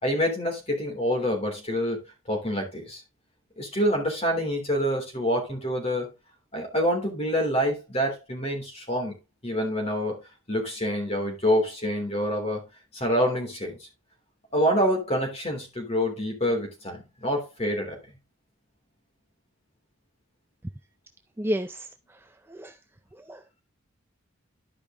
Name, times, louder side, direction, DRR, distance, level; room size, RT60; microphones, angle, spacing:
voice 1, 0.0-2.0 2.3-3.0 3.6-6.1 6.5-9.1 9.4-10.2 10.5-12.6 12.9-13.8 14.5-18.0, equal, 30° left, 3.3 m, -26 dB
voice 2, 21.4-21.8 22.6-22.7 23.3-23.6, equal, 10° right, 0.4 m, -30 dB
12.0 x 5.3 x 3.7 m
head